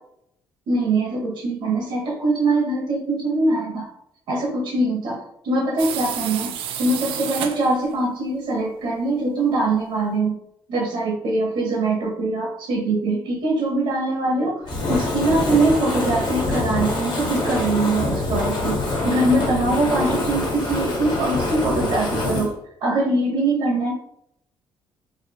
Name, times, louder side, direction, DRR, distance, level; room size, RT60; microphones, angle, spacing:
voice 1, 0.7-3.9 4.3-10.4 10.7-14.5 14.9-22.5 22.8-23.9, right 2 dB, 65° right, -1 dB, 0.9 m, -22 dB
sound 1, 5.8-8.0, right 9 dB, 85° right, 0.4 m, -30 dB
Fire, 14.7-22.5, left 2 dB, 60° left, 1.3 m, -25 dB
4.1 x 2.6 x 2.8 m, 0.75 s
cardioid pair, 160°, 9 cm